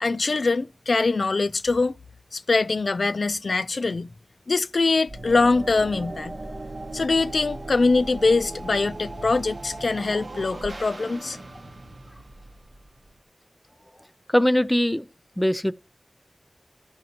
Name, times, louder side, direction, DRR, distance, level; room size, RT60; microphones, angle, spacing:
voice 1, 0.0-1.9 2.3-4.1 4.5-6.3 6.9-11.4, left 3 dB, 90° left, 0.3 m, -23 dB
sound 1, 5.1-13.2, right 2 dB, 75° right, 0.8 m, -38 dB
voice 2, 14.3-15.1 15.4-15.7, left 1 dB, 10° left, 0.4 m, -21 dB
13.5 x 5.1 x 2.8 m
wide cardioid pair, 70°, 0 cm